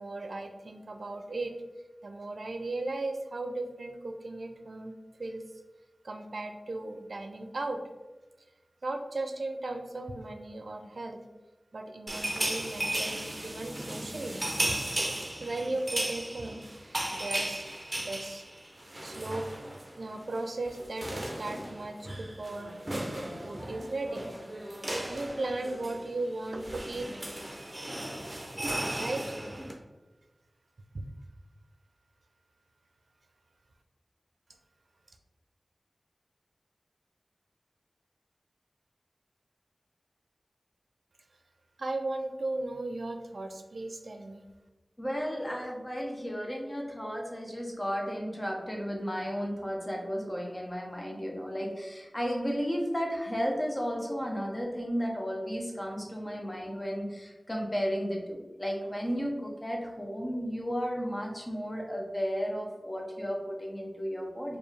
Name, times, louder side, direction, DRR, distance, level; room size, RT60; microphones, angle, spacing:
voice 1, 0.0-1.5 2.0-4.9 5.2-5.4 6.0-7.8 8.8-11.2 11.7-14.4 15.4-17.7 18.0-18.4 19.0-19.5 20.0-23.1 23.4-24.3 24.7-27.1 29.0-29.2 41.8-44.4, right 2 dB, 80° right, 5 dB, 0.4 m, -36 dB
sound 1, 12.1-19.9 20.2-20.4 20.7-29.7, right 1 dB, 35° right, 0.7 m, -36 dB
voice 2, 45.0-64.6, equal, 20° left, -1 dB, 0.9 m, -33 dB
4.3 x 2.7 x 3.3 m, 1.2 s
wide cardioid pair, 55°, 0 cm